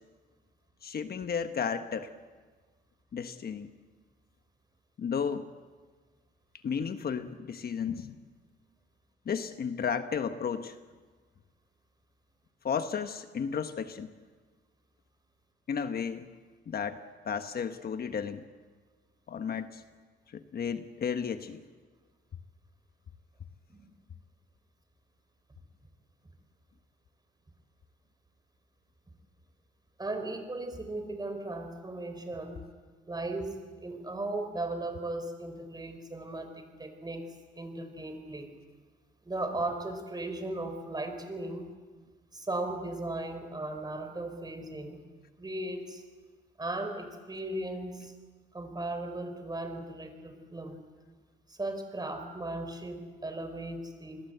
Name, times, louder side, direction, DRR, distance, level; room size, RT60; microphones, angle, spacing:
voice 1, 0.8-2.1 3.1-3.7 5.0-5.5 6.6-8.1 9.2-10.7 12.6-14.1 15.7-16.3 16.7-18.5 19.3-19.8 20.3-21.6, left 7 dB, 50° left, 8 dB, 1.3 m, -33 dB
voice 2, 30.0-32.6 33.1-33.5 33.8-37.3 37.6-38.5 39.2-41.7 42.3-45.0 45.4-46.0 46.6-48.1 48.5-50.8 51.5-54.2, right 2 dB, 20° right, 7 dB, 5.0 m, -37 dB
28.5 x 21.0 x 8.2 m, 1.5 s
cardioid pair, 90°, 20 cm